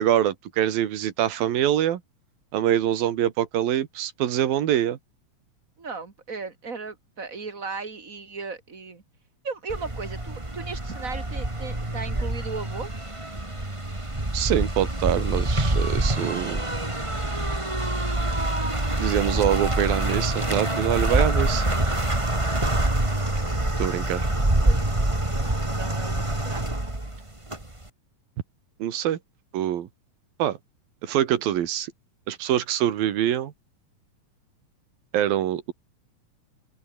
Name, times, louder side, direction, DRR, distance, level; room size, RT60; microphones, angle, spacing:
voice 1, 0.0-2.0 2.5-5.0 14.3-16.6 19.0-21.7 23.8-24.3 28.8-29.2 29.5-29.9 30.4-30.6 31.0-31.9 32.3-33.5 35.1-35.7, right 11 dB, 75° right, 3.4 m, -24 dB
voice 2, 5.8-9.0 9.4-12.9 24.6-26.6, right 4 dB, 30° right, 2.0 m, -36 dB
sound 1, 9.7-27.9, right 1 dB, 10° right, 2.4 m, -26 dB
open air
omnidirectional pair, 4.3 m